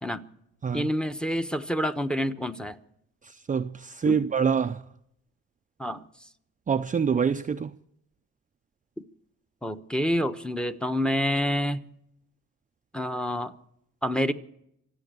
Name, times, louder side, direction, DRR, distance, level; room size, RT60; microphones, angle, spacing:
voice 1, 0.7-2.8 4.1-4.2 5.8-6.1 9.6-11.8 12.9-13.5 14.0-14.3, equal, 5° left, 1.0 m, -27 dB
voice 2, 3.2-4.8 6.7-7.8, right 6 dB, 25° right, 0.5 m, -26 dB
25.0 x 8.5 x 6.8 m
cardioid pair, 90°, 30 cm